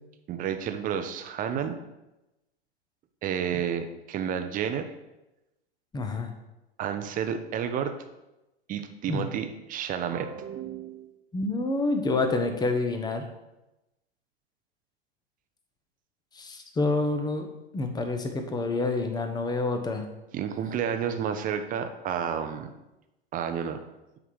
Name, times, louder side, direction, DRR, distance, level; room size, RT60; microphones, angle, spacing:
voice 1, 0.3-1.8 3.2-4.9 6.8-7.9 8.7-11.1 20.3-22.7 23.3-23.9, right 8 dB, 25° right, 7 dB, 0.7 m, -31 dB
voice 2, 5.9-6.3 9.1-9.3 11.3-13.2 16.3-17.5 17.7-20.1, left 3 dB, 15° left, 6 dB, 0.9 m, -28 dB
8.3 x 3.7 x 6.3 m, 0.98 s
figure-of-eight pair, 95°, 32 cm